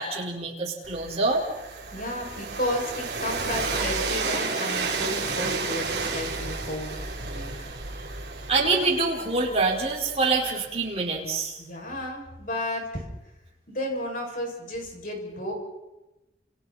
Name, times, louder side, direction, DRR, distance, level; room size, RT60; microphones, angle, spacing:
voice 1, 0.0-1.5 8.5-11.6, right 3 dB, 35° right, -2 dB, 5.0 m, -25 dB
Train, 0.8-10.7, right 4 dB, 65° right, 3.7 m, -32 dB
voice 2, 1.9-7.5 11.6-13.1 13.7-15.5, left 1 dB, 50° left, 0 dB, 6.9 m, -32 dB
29.5 x 28.5 x 4.4 m, 0.98 s
head